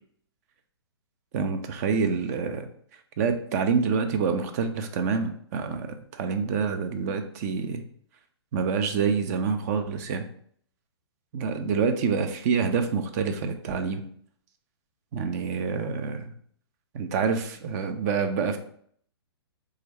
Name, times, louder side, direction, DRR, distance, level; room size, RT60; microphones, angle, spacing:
voice 1, 1.3-2.7 3.2-7.8 8.5-10.3 11.3-14.0 15.1-16.2 16.9-18.6, right 5 dB, 40° right, 7 dB, 0.5 m, -27 dB
4.0 x 2.4 x 3.2 m, 0.62 s
hypercardioid pair, 130°, 14 cm